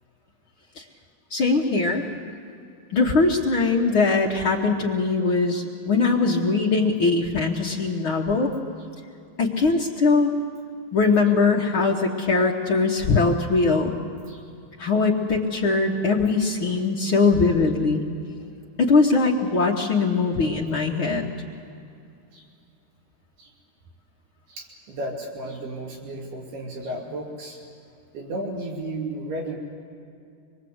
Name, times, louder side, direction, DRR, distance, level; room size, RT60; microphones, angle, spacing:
voice 1, 1.3-2.0 2.9-8.5 9.4-10.3 10.9-13.9 14.8-18.1 18.8-21.3, left 4 dB, 65° left, -2 dB, 1.2 m, -21 dB
voice 2, 24.5-27.6 28.1-29.6, right 1 dB, 75° right, -1 dB, 4.9 m, -33 dB
25.0 x 22.0 x 8.0 m, 2.5 s
omnidirectional pair, 4.5 m